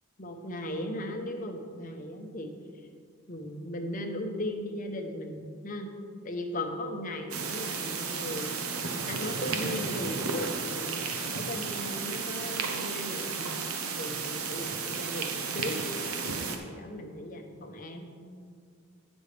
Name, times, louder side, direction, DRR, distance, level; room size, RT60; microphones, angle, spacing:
voice 1, 0.2-2.5 3.3-5.9 6.2-8.8 9.1-13.6 14.0-18.1, left 1 dB, 35° left, 4 dB, 0.8 m, -37 dB
sound 1, 7.3-16.6, right 5 dB, 80° right, 0.9 m, -33 dB
16.0 x 6.2 x 3.4 m, 2.2 s
head